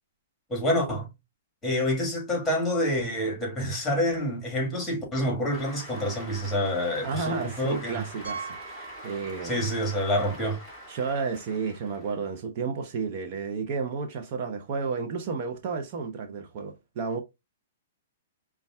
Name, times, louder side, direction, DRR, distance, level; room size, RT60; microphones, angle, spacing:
voice 1, 0.5-1.1 1.6-8.0 9.4-10.6, equal, 10° left, 1.5 m, -27 dB
Cheering / Applause, 5.5-12.4, equal, 15° right, 2.2 m, -44 dB
voice 2, 7.0-8.6 9.0-9.7 10.9-17.2, right 5 dB, 45° right, 0.6 m, -32 dB
Piano, 8.2-9.8 10.1-10.3 10.9-11.0 11.2-11.3 13.4-13.5, right 5 dB, 80° right, 1.2 m, -41 dB
5.1 x 2.3 x 2.2 m
hypercardioid pair, 135°, 0 cm